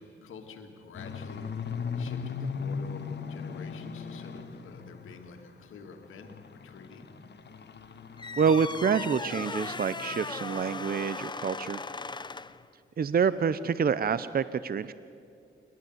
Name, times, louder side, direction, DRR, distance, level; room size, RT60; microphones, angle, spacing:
voice 1, 0.0-7.1, left 4 dB, 90° left, 4 dB, 1.9 m, -48 dB
sound 1, 0.9-5.5 5.9-11.1 11.4-11.7 12.0-12.1 12.5-12.6, left 5 dB, 60° left, 1.4 m, -39 dB
sound 2, 8.2-12.6, left 4 dB, 20° left, 0.5 m, -38 dB
voice 2, 8.4-11.8 13.0-14.9, right 6 dB, 50° right, 15 dB, 0.6 m, -27 dB
27.5 x 12.5 x 7.9 m, 2.4 s
cardioid pair, 55°, 20 cm